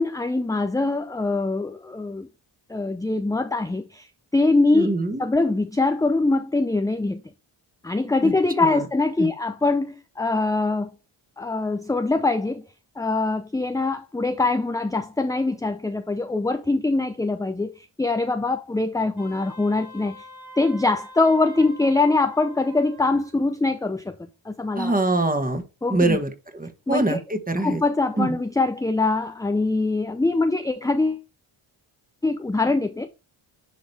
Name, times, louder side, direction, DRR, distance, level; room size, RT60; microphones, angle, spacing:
voice 1, 0.0-2.3 2.7-4.1 4.3-7.2 7.8-10.9 11.4-12.6 13.0-20.2 20.6-24.2 24.4-25.0 25.8-26.2 26.9-27.2 27.6-31.2 32.2-33.1, left 3 dB, 5° left, 0.5 m, -23 dB
voice 2, 4.7-5.2 8.2-8.3 8.6-8.8 9.2-9.3 24.7-25.6 25.9-27.8 28.2-28.4, right 2 dB, 15° right, 1.7 m, -24 dB
Wind instrument woodwind instrument, 19.2-23.4, right 1 dB, 50° right, 2.8 m, -44 dB
10.0 x 3.9 x 3.4 m
cardioid pair, 80°, 50 cm